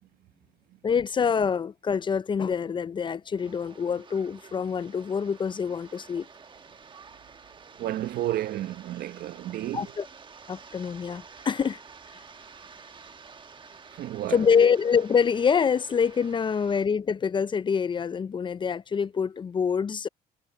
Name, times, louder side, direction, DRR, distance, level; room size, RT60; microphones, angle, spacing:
voice 1, 0.8-6.3 9.7-10.1 10.5-11.8 14.3-20.1, left 6 dB, 30° left, 0.5 m, -25 dB
sound 1, 3.4-16.9, right 5 dB, 30° right, 1.3 m, -50 dB
voice 2, 7.8-9.9 13.9-14.4, right 13 dB, 65° right, 0.9 m, -31 dB
cardioid pair, 110°, 17 cm